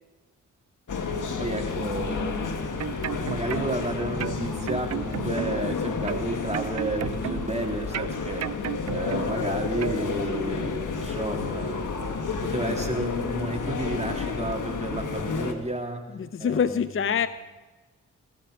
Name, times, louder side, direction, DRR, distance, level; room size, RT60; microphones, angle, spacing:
sound 1, 0.9-15.5, left 4 dB, 65° left, 1.7 m, -31 dB
voice 1, 1.4-8.5 8.9-16.0 16.4-17.2, right 2 dB, 20° right, 2 dB, 3.1 m, -32 dB
sound 2, 2.6-3.9 4.2-5.7 6.1-7.6 7.9-9.5 9.8-10.0, right 10 dB, 50° right, 0.5 m, -33 dB
voice 2, 16.1-17.3, left 7 dB, 40° left, 13 dB, 0.6 m, -25 dB
19.0 x 12.0 x 5.0 m, 1.3 s
supercardioid pair, 40°, 33 cm